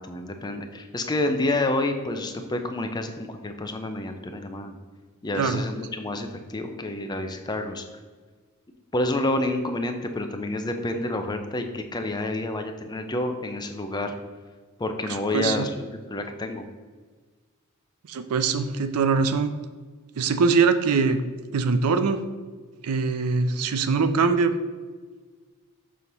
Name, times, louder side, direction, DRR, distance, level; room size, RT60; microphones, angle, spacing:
voice 1, 0.0-4.7 5.2-7.8 8.9-14.2 14.8-15.7 16.1-16.7, left 2 dB, 20° left, 6 dB, 0.5 m, -29 dB
voice 2, 18.1-19.5 20.2-21.2 21.5-22.2 22.8-24.5, right 5 dB, 85° right, 10 dB, 0.5 m, -22 dB
6.3 x 2.9 x 5.2 m, 1.4 s
head